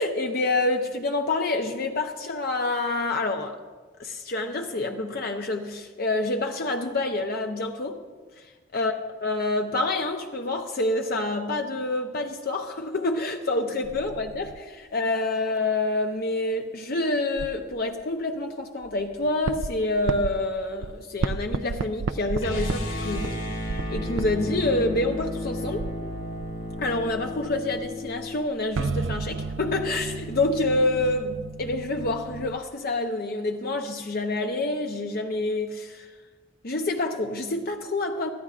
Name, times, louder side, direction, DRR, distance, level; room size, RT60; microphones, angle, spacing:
voice 1, 0.0-3.5 4.0-8.0 8.4-8.9 9.2-23.4 23.9-25.9 26.8-36.1 36.6-38.3, left 2 dB, 50° left, 3 dB, 0.7 m, -27 dB
sound 1, 13.8-14.6 17.4-17.7 18.8-20.5 20.8-20.9 21.2-22.7 23.2-24.6 24.9-32.6, right 4 dB, 75° right, 0.4 m, -33 dB
sound 2, 22.4-28.4, left 1 dB, 70° left, 3.8 m, -33 dB
25.0 x 13.5 x 2.5 m, 1.4 s
head